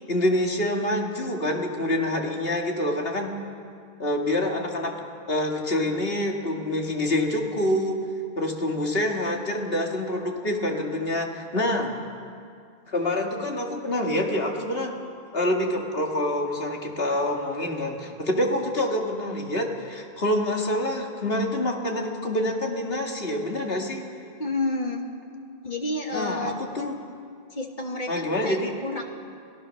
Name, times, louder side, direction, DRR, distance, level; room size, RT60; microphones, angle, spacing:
voice 1, 0.1-3.3 4.0-5.0 5.3-8.0 8.4-11.9 12.9-15.0 15.3-24.0 26.1-26.9 28.1-28.7, left 1 dB, 70° left, 1 dB, 2.5 m, -26 dB
voice 2, 24.4-25.0 25.6-26.5 27.5-29.0, left 2 dB, 50° left, 2 dB, 2.1 m, -30 dB
25.5 x 18.0 x 6.5 m, 2.3 s
omnidirectional pair, 1.0 m